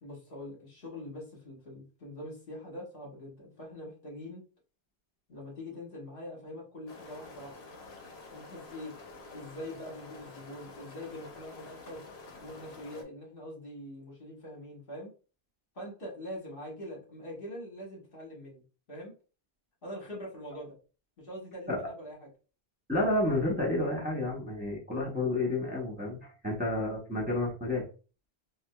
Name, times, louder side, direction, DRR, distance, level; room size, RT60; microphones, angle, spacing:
voice 1, 0.0-4.4 5.3-7.6 8.3-8.9 9.3-12.0 12.4-15.1 15.7-18.6 18.9-19.1 19.8-20.8 21.2-22.3, left 1 dB, 60° left, -2 dB, 1.4 m, -43 dB
sound 1, 6.9-13.0, left 3 dB, 75° left, 1.0 m, -49 dB
voice 2, 22.9-27.8, left 2 dB, 10° right, -4 dB, 0.8 m, -30 dB
4.7 x 2.1 x 2.2 m, 0.35 s
omnidirectional pair, 1.1 m